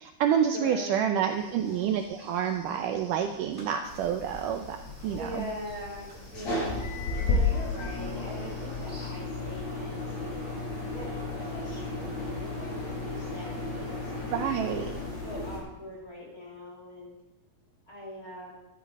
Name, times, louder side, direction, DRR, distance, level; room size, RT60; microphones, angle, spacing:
voice 1, 0.0-4.8 5.0-5.5 14.3-14.9, right 8 dB, 90° right, 5 dB, 1.8 m, -28 dB
voice 2, 0.5-0.9 1.2-1.5 5.1-6.8 7.2-10.4 10.9-14.4 15.2-17.2 17.9-18.5, equal, 25° left, -3 dB, 2.5 m, -42 dB
sound 1, 1.3-9.1, equal, 5° left, 3.5 m, -53 dB
sound 2, 3.8-15.6, left 3 dB, 45° left, 5.2 m, -33 dB
13.5 x 12.0 x 4.1 m, 1.0 s
omnidirectional pair, 4.7 m